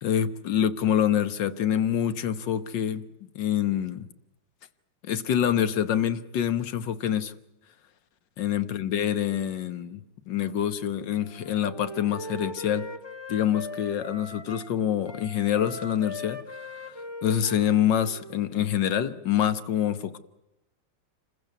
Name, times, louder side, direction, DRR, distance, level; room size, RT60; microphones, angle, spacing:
voice 1, 0.0-3.0 3.4-4.1 5.1-7.3 8.4-12.9 13.3-16.7 17.2-20.2, left 10 dB, 65° left, 12 dB, 1.7 m, -26 dB
Wind instrument woodwind instrument, 11.2-14.7 15.0-18.8, left 1 dB, 15° left, 1.2 m, -40 dB
27.5 x 15.0 x 9.4 m, 0.91 s
omnidirectional pair, 2.2 m